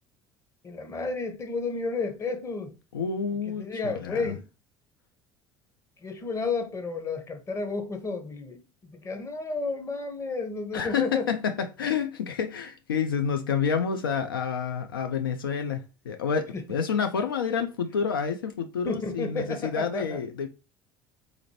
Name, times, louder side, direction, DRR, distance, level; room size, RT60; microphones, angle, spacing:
voice 1, 0.6-2.8 3.4-4.4 6.0-11.3 16.5-16.6 18.9-20.2, left 3 dB, 25° left, 0.9 m, -32 dB
voice 2, 2.9-4.3 10.7-20.5, left 6 dB, 75° left, 0.4 m, -29 dB
4.0 x 2.5 x 2.9 m
figure-of-eight pair, 65°, 12 cm